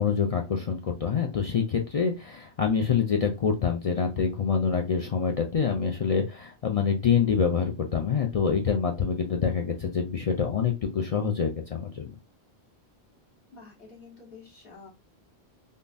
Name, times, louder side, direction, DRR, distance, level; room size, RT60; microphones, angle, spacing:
voice 1, 0.0-12.1, left 6 dB, 60° left, 2 dB, 0.4 m, -26 dB
voice 2, 13.5-14.9, left 4 dB, 40° left, -5 dB, 1.7 m, -49 dB
3.6 x 2.7 x 2.5 m, 0.26 s
omnidirectional pair, 1.1 m